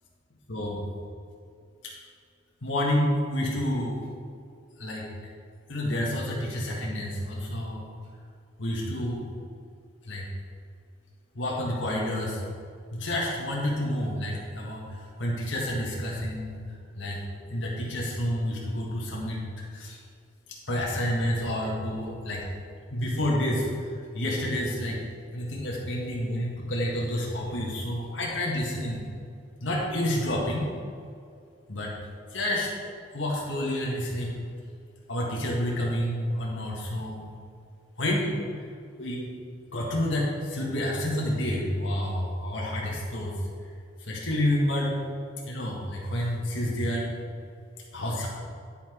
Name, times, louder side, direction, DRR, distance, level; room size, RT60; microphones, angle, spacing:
voice 1, 2.6-4.1 4.8-5.1 5.7-7.9 8.6-9.3 10.0-10.3 11.3-12.4 12.9-14.8 15.2-16.6 16.9-17.2 17.5-19.4 19.7-20.0 20.7-22.4 22.9-23.7 24.1-25.0 25.3-29.0 29.6-30.7 31.7-31.9 32.3-32.7 33.1-34.3 35.1-37.3 38.0-38.4 39.0-39.3 39.7-43.4 44.1-44.9 45.5-47.1 47.9-48.3, left 1 dB, 75° left, -3 dB, 1.7 m, -29 dB
10.5 x 5.9 x 4.5 m, 2.3 s
head